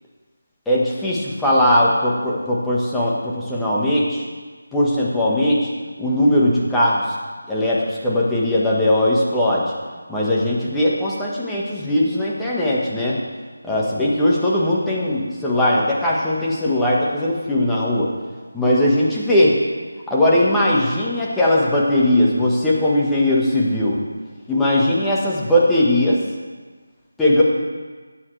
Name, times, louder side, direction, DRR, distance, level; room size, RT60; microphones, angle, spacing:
voice 1, 0.7-4.2 4.7-5.7 6.0-7.0 7.5-9.7 10.1-13.2 13.6-18.1 18.5-19.6 20.1-24.0 24.5-26.2 27.2-27.4, left 1 dB, 5° left, -7 dB, 1.4 m, -19 dB
16.0 x 8.5 x 3.4 m, 1.4 s
figure-of-eight pair, 165°, 0 cm